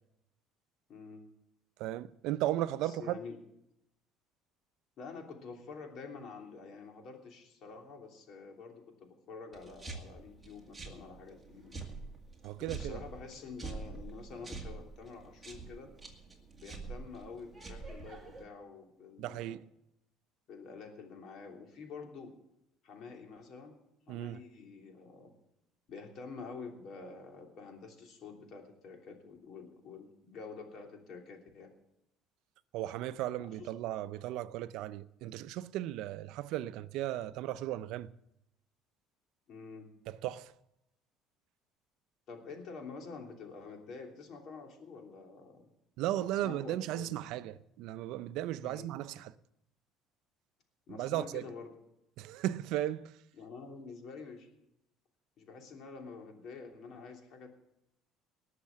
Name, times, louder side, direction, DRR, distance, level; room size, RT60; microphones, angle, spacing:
voice 1, 0.9-1.2 2.8-3.4 5.0-11.8 12.7-15.9 16.6-19.6 20.5-22.3 22.8-23.7 24.1-25.3 25.9-31.7 33.4-34.1 39.5-40.0 42.3-45.7 46.1-47.2 48.6-48.9 50.9-51.7 53.4-54.5 55.4-57.5, left 4 dB, 50° left, 3.0 m, -48 dB
voice 2, 1.8-3.2 12.4-13.0 19.2-19.7 24.1-24.4 32.7-38.1 40.1-40.5 46.0-49.3 51.0-51.4 52.2-53.2, right 13 dB, 70° right, 0.5 m, -36 dB
sound 1, 9.5-18.4, right 3 dB, 10° right, 2.1 m, -46 dB
19.0 x 6.7 x 7.4 m
cardioid pair, 145°, 0 cm